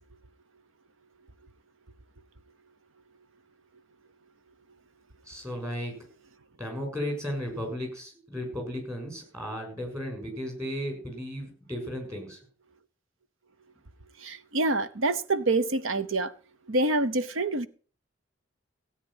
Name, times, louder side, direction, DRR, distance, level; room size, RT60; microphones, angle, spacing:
voice 1, 5.2-5.9 6.6-12.4, equal, 15° right, 6.3 m, -35 dB
voice 2, 14.2-16.3 16.7-17.7, right 2 dB, 85° right, 1.0 m, -26 dB
16.5 x 8.7 x 5.6 m
head